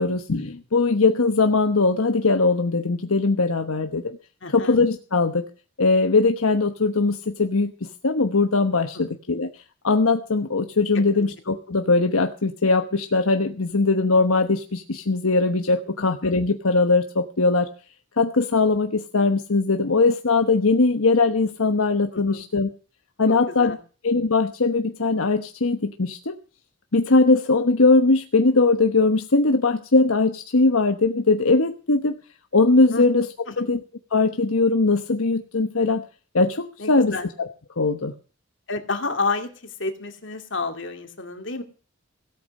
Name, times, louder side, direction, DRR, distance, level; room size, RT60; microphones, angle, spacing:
voice 1, 0.0-4.2 4.5-5.4 5.8-9.5 9.8-17.7 18.2-22.7 23.2-23.8 24.0-26.4 26.9-32.1 32.5-33.2 33.6-33.8 34.1-36.0 36.3-37.5 37.8-38.1, left 3 dB, 80° left, 6 dB, 1.1 m, -20 dB
voice 2, 4.4-4.8 8.9-9.1 10.9-11.3 15.8-15.9 22.1-22.4 23.3-23.8 32.9-33.0 33.5-33.7 36.8-37.3 38.7-41.6, left 3 dB, 60° left, 6 dB, 2.4 m, -30 dB
17.5 x 8.5 x 6.5 m, 0.38 s
head